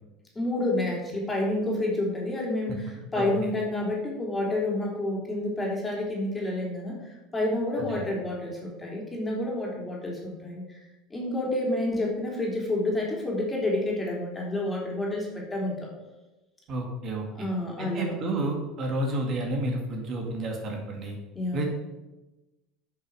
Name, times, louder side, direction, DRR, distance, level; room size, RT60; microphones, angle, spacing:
voice 1, 0.3-10.8 11.1-15.9 17.3-18.1 21.3-21.7, left 1 dB, 15° left, -2 dB, 3.3 m, -29 dB
voice 2, 16.7-17.5 17.8-21.2 21.5-21.7, right 1 dB, 45° right, 1 dB, 2.0 m, -30 dB
10.5 x 6.2 x 4.8 m, 1.1 s
supercardioid pair, 120°, 0 cm